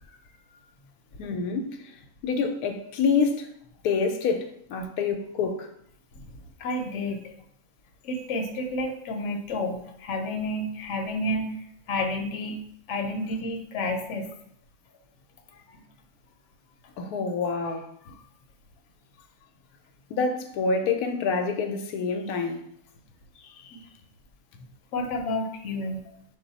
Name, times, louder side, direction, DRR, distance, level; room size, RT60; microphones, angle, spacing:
voice 1, 1.2-1.9 2.2-3.5 3.8-5.7 17.0-17.9 20.1-22.7 23.4-23.8, left 5 dB, 90° left, 1.1 m, -27 dB
voice 2, 6.6-7.3 8.0-11.6 11.9-12.6 12.9-14.3 23.7-23.8 24.9-26.0, left 1 dB, 60° left, 0.9 m, -30 dB
5.8 x 2.2 x 4.0 m
omnidirectional pair, 1.6 m